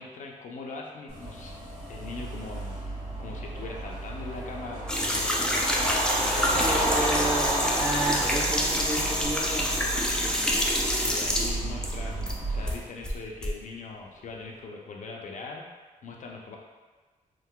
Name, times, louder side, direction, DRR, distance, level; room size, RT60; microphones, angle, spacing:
voice 1, 0.0-1.5 1.9-2.8 3.2-5.7 6.1-7.4 10.3-15.7 16.0-16.6, left 3 dB, 65° left, 0 dB, 0.5 m, -41 dB
sound 1, 1.1-12.7, right 1 dB, 85° right, 1.3 m, -32 dB
sound 2, 4.9-12.4 12.7-13.5, equal, 5° left, 0.4 m, -27 dB
voice 2, 6.4-9.9, right 1 dB, 25° right, -8 dB, 1.0 m, -32 dB
3.7 x 2.5 x 2.2 m, 1.3 s
wide cardioid pair, 110°, 14 cm